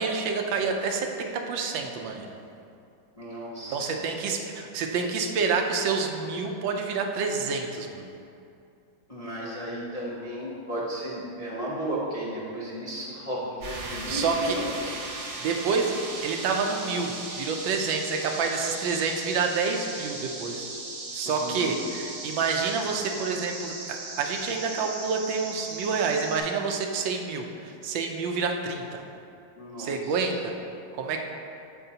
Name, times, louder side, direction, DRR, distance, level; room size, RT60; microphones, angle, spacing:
voice 1, 0.0-2.3 3.7-8.1 13.9-14.6 14.8-15.0 15.4-15.9 16.2-20.7 21.1-27.5 27.8-29.0 29.8-30.5 30.9-31.2, right 5 dB, 80° right, 3 dB, 1.4 m, -28 dB
voice 2, 3.2-4.0 9.1-14.9 21.2-21.8 29.6-30.2, right 1 dB, 35° left, -7 dB, 0.6 m, -34 dB
sound 1, 13.6-26.4, right 2 dB, 45° right, 1.1 m, -38 dB
13.5 x 4.6 x 2.8 m, 2.5 s
omnidirectional pair, 2.1 m